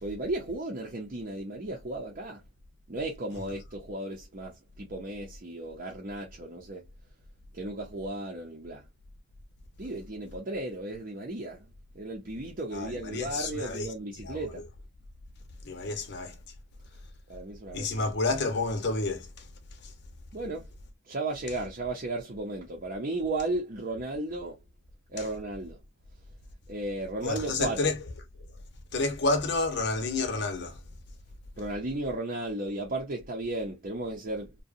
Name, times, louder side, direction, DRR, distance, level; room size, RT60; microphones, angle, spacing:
voice 1, 0.0-2.4 2.9-6.8 7.5-8.9 9.8-11.7 11.9-14.6 17.3-17.9 20.3-20.7 21.0-24.6 25.1-25.8 26.7-27.9 31.6-34.6, right 2 dB, 45° right, 0.6 m, -35 dB
voice 2, 12.7-13.9 14.2-14.6 15.6-16.4 17.7-19.5 19.8-19.9 27.2-28.0 28.9-30.8, left 3 dB, 60° left, 0.7 m, -30 dB
2.7 x 2.2 x 2.4 m
head